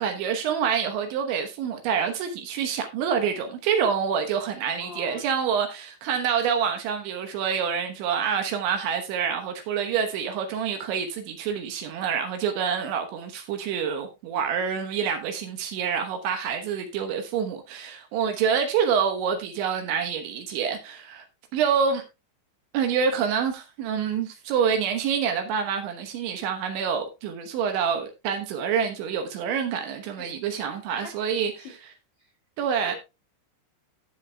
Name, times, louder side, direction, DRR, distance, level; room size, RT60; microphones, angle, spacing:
voice 1, 0.0-21.2 21.5-22.0 22.7-31.8 32.6-33.0, right 7 dB, 75° right, 3.3 m, -27 dB
voice 2, 4.8-5.2 30.2-30.3 31.0-31.1 31.6-31.7 32.8-32.9, left 2 dB, 90° left, 1.0 m, -40 dB
15.5 x 7.3 x 2.3 m
omnidirectional pair, 5.7 m